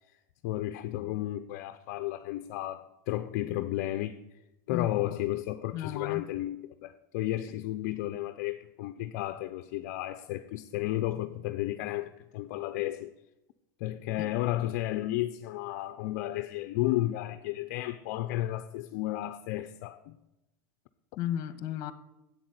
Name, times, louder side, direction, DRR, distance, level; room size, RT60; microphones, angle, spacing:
voice 1, 0.1-4.4 4.7-6.6 6.8-13.1 13.8-20.2, left 15 dB, 60° left, 0.7 m, -33 dB
voice 2, 5.7-6.2 14.2-14.3 21.2-21.9, left 11 dB, 45° left, 1.4 m, -33 dB
11.0 x 8.5 x 9.6 m
supercardioid pair, 150°, 9 cm